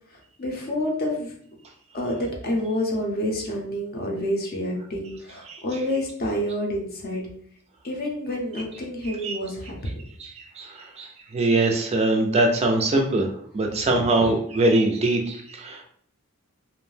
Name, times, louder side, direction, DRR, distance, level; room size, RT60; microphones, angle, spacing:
voice 1, 0.4-1.3 1.9-7.2 7.8-9.7, left 1 dB, 45° left, 0 dB, 0.6 m, -28 dB
voice 2, 5.5-5.8 9.0-9.4 10.2-15.8, right 2 dB, 30° right, 3 dB, 0.3 m, -23 dB
2.5 x 2.0 x 3.2 m, 0.63 s
head